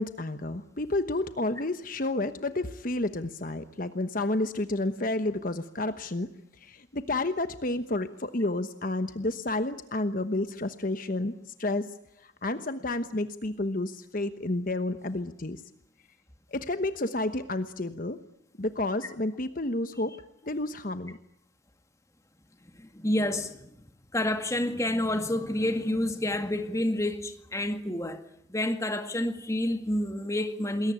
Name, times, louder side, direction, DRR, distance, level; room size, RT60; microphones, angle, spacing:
voice 1, 0.0-6.3 6.6-11.3 11.6-11.9 12.2-15.6 16.5-18.2 18.6-20.1 20.4-21.2, left 2 dB, 45° left, 1.1 m, -30 dB
voice 2, 22.8-23.7 24.1-28.2 28.5-30.9, left 1 dB, 15° left, 2.0 m, -29 dB
28.0 x 21.5 x 9.7 m
head